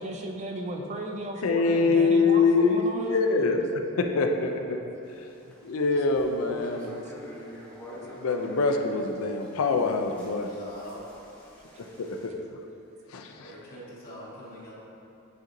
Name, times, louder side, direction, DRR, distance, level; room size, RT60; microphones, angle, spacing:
voice 1, 0.0-3.6 4.4-4.8 7.0-7.1, right 1 dB, 30° right, 2 dB, 0.4 m, -35 dB
voice 2, 1.4-3.6 4.0-4.8 5.6-6.9 8.0-10.5 11.8-12.3 13.1-13.3, left 4 dB, 75° left, 4 dB, 0.5 m, -24 dB
sound 1, 5.0-12.3, equal, 5° left, 1.0 m, -46 dB
voice 3, 10.3-11.0 11.7-11.8 13.4-14.7, equal, 45° left, -7 dB, 0.9 m, -44 dB
9.1 x 4.1 x 2.6 m, 2.8 s
head